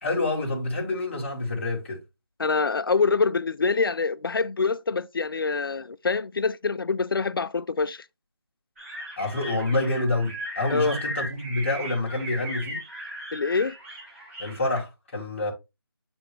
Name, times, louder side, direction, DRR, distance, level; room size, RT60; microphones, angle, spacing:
voice 1, 0.0-2.0 9.2-12.8 14.4-15.5, left 2 dB, 30° left, 1.6 m, -27 dB
voice 2, 2.4-8.0 10.7-11.0 13.3-13.8, left 4 dB, 60° left, 0.5 m, -25 dB
sound 1, 8.8-14.8, equal, 35° right, 3.6 m, -37 dB
7.8 x 4.2 x 3.2 m
figure-of-eight pair, 175°, 13 cm